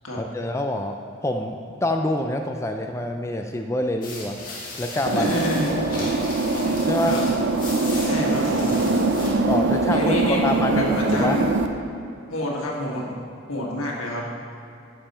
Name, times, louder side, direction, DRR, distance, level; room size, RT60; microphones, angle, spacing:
voice 1, 0.1-1.0 1.2-4.4 4.8-5.3 5.7-6.1 6.9-7.2 9.5-11.4, left 1 dB, 15° left, 4 dB, 0.3 m, -26 dB
sound 1, 4.0-9.3, left 2 dB, 40° left, 1.9 m, -37 dB
voice 2, 5.1-5.7 7.1-7.2 8.0-8.8 9.9-11.4 12.3-13.1 13.5-14.3, left 1 dB, 90° left, -2 dB, 1.7 m, -28 dB
sound 2, 5.1-11.7, right 3 dB, 55° right, 0.5 m, -22 dB
12.0 x 5.5 x 4.3 m, 2.6 s
head